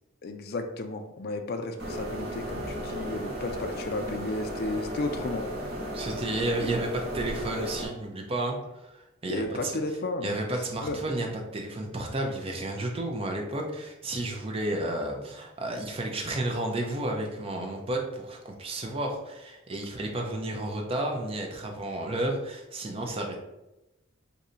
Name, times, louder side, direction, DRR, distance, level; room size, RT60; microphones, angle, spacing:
voice 1, 0.2-5.4 9.3-10.4 10.8-11.0, left 2 dB, 50° left, 6 dB, 0.4 m, -33 dB
sound 1, 1.8-7.9, equal, 50° right, 1.0 m, -35 dB
voice 2, 5.9-9.8 10.2-11.3 11.5-23.4, right 1 dB, 25° right, 1 dB, 0.5 m, -32 dB
2.7 x 2.6 x 4.2 m, 0.96 s
head